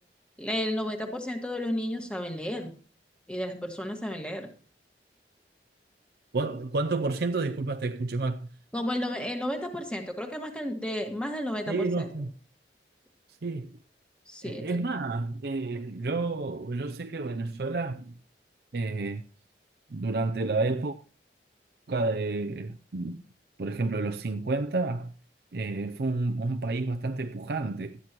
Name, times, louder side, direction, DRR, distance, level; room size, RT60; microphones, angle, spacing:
voice 1, 0.4-2.7 3.3-4.5 8.7-12.1 14.3-14.6, left 1 dB, 5° left, 1.8 m, -32 dB
voice 2, 6.3-8.5 11.7-12.3 13.4-13.7 14.4-18.2 18.7-19.2 19.9-21.0 21.9-23.2 23.6-25.1 25.5-28.0, right 3 dB, 60° right, 0.6 m, -30 dB
17.0 x 12.5 x 3.0 m
head